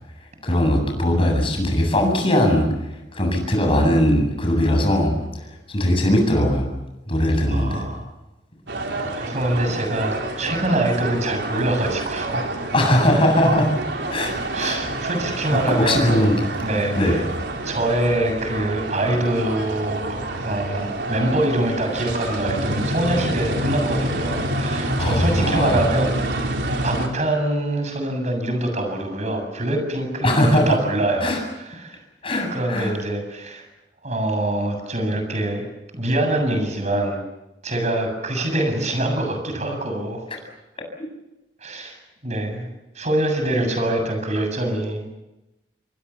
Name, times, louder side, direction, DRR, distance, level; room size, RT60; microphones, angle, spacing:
voice 1, 0.4-2.7 3.1-6.7 7.1-7.9 12.7-13.7 14.1-14.8 15.5-16.4 16.9-17.3 25.0-25.8 30.2-30.8 31.2-31.4 32.2-32.9 41.0-41.1, left 1 dB, 30° left, 2 dB, 7.9 m, -20 dB
voice 2, 7.5-8.1 9.2-12.5 14.5-16.1 16.6-17.2 17.6-26.5 26.8-31.3 31.8-32.0 32.5-33.6 34.0-35.7 35.9-37.2 37.6-40.3 41.6-42.0 42.2-42.7 43.0-45.1, right 1 dB, 40° right, 5 dB, 7.4 m, -24 dB
sound 1, 8.7-27.1, right 1 dB, 75° right, 3.9 m, -27 dB
27.5 x 23.0 x 7.2 m, 0.99 s
head